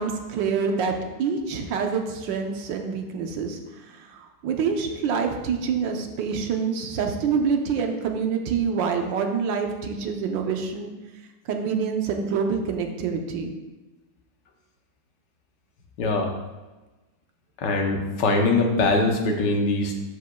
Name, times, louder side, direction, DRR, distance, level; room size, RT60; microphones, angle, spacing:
voice 1, 0.0-3.6 3.9-10.9 11.5-13.5, right 6 dB, 85° right, 4 dB, 1.5 m, -26 dB
voice 2, 16.0-16.3 17.6-20.0, left 2 dB, 70° left, 2 dB, 1.5 m, -22 dB
12.5 x 5.2 x 2.3 m, 1.1 s
omnidirectional pair, 1.9 m